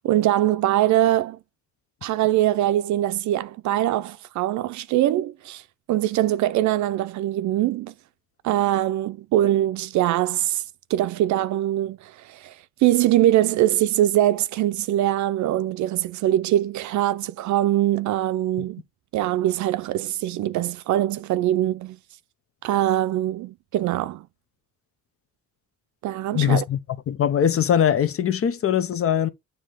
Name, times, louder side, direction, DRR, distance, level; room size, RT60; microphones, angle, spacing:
voice 1, 0.0-1.4 2.0-5.6 5.9-7.9 8.4-10.6 10.9-18.8 19.1-22.0 22.6-24.3 26.0-26.6, right 13 dB, 70° right, 0.4 m, -22 dB
voice 2, 26.3-26.8 27.1-29.3, left 9 dB, 50° left, 0.7 m, -21 dB
7.4 x 2.8 x 4.9 m
cardioid pair, 90°, 30 cm